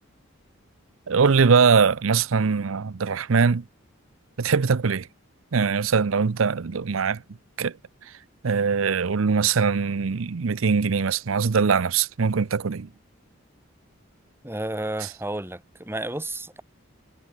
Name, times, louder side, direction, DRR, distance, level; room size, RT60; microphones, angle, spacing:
voice 1, 1.1-3.6 4.4-5.1 5.5-7.2 7.6-7.7 8.4-12.9, right 5 dB, 75° right, 0.6 m, -22 dB
voice 2, 14.4-16.6, right 1 dB, 10° right, 2.5 m, -32 dB
head